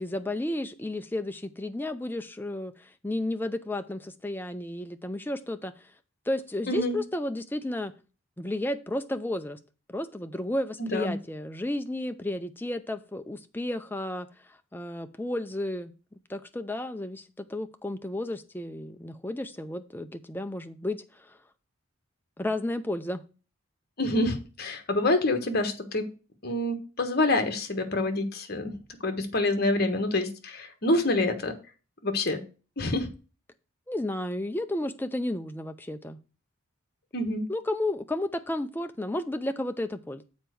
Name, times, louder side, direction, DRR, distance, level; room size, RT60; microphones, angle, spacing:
voice 1, 0.0-5.9 6.3-7.9 8.4-9.6 9.9-15.9 16.3-21.4 22.4-23.2 33.9-36.2 37.5-40.2, left 1 dB, 10° left, 8 dB, 0.5 m, -32 dB
voice 2, 6.7-7.0 10.8-11.1 24.0-26.1 26.4-28.7 29.0-31.5 32.0-32.4 32.8-33.1 37.1-37.4, left 2 dB, 50° left, 7 dB, 1.3 m, -27 dB
7.3 x 4.6 x 6.3 m, 0.33 s
head